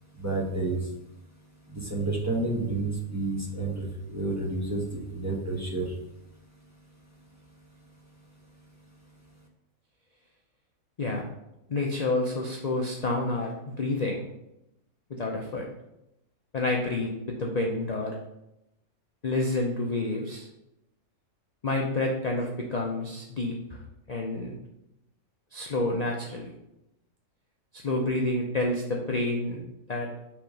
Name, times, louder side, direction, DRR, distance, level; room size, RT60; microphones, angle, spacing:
voice 1, 0.2-0.8 1.7-5.9, right 2 dB, 15° right, -2 dB, 0.9 m, -30 dB
voice 2, 11.7-14.3 15.1-15.7 16.5-18.1 19.2-20.5 21.6-23.8 24.1-24.5 25.5-26.5 27.7-29.6 29.9-30.1, left 2 dB, 45° left, 0 dB, 0.6 m, -29 dB
5.9 x 3.6 x 5.0 m, 0.87 s
omnidirectional pair, 1.5 m